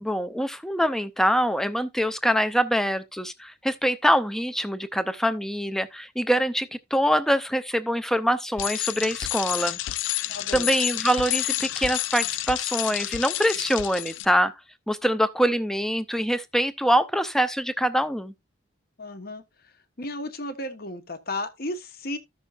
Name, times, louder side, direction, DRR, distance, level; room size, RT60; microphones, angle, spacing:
voice 1, 0.0-9.8 10.5-14.5 14.9-18.3, equal, ahead, 0.5 m, -24 dB
Bicycle, 8.6-14.2, left 15 dB, 70° left, 0.4 m, -29 dB
voice 2, 10.3-10.8 19.0-22.2, left 1 dB, 50° left, 1.2 m, -34 dB
14.5 x 6.2 x 2.4 m
head